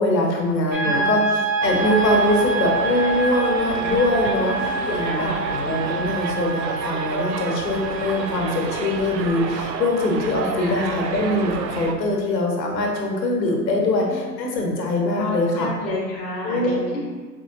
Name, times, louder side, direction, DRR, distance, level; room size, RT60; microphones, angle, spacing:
voice 1, 0.0-15.7 16.4-17.0, left 2 dB, 85° left, 0 dB, 1.0 m, -23 dB
sound 1, 0.7-11.5, right 3 dB, 25° right, 0.7 m, -28 dB
voice 2, 0.8-1.1 4.3-5.5 10.5-11.0 14.1-14.3 15.1-17.0, left 2 dB, ahead, -10 dB, 0.4 m, -31 dB
Subway metro underground, 1.6-11.9, right 5 dB, 85° right, 0.6 m, -30 dB
4.8 x 3.1 x 2.7 m, 1.4 s
hypercardioid pair, 115°, 49 cm